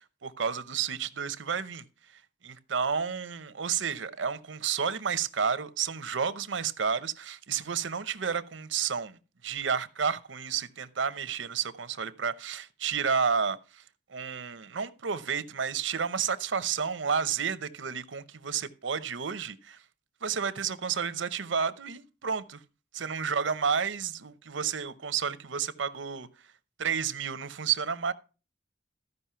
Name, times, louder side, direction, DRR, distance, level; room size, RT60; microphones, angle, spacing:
voice 1, 0.2-1.8 2.4-13.8 14.1-19.8 20.2-22.6 22.9-26.3 26.8-28.1, right 6 dB, 90° right, 0.8 m, -31 dB
14.0 x 5.4 x 5.6 m
head